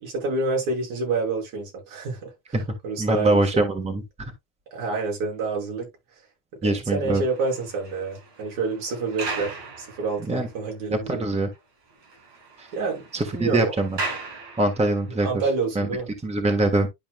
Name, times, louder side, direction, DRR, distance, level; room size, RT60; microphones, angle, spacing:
voice 1, 0.0-3.5 4.7-5.9 6.6-11.2 12.7-13.0 13.3-13.7 15.2-16.1, right 3 dB, 75° right, 5.9 m, -28 dB
voice 2, 3.0-4.0 6.6-7.2 10.3-10.5 10.9-11.5 12.6-12.7 13.1-14.0 14.6-15.4 15.7-15.9 16.2-16.9, right 2 dB, 15° right, 1.4 m, -23 dB
sound 1, 7.0-10.5 11.0-11.1 11.5-11.6 11.9-15.1, right 3 dB, 60° right, 5.8 m, -37 dB
11.5 x 5.0 x 2.3 m
cardioid pair, 125°, 50 cm